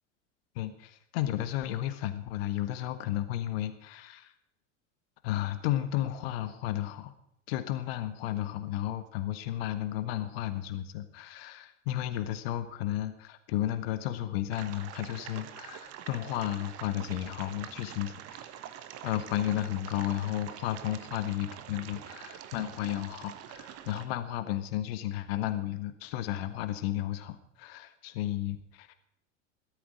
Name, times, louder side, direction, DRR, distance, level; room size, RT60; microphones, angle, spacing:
voice 1, 0.5-4.3 5.2-7.1 7.5-18.5 19.0-28.9, left 13 dB, 55° left, 11 dB, 1.4 m, -33 dB
sound 1, 14.5-24.1, right 11 dB, 40° right, 1.3 m, -45 dB
15.5 x 13.0 x 5.1 m, 0.74 s
figure-of-eight pair, 80°, 37 cm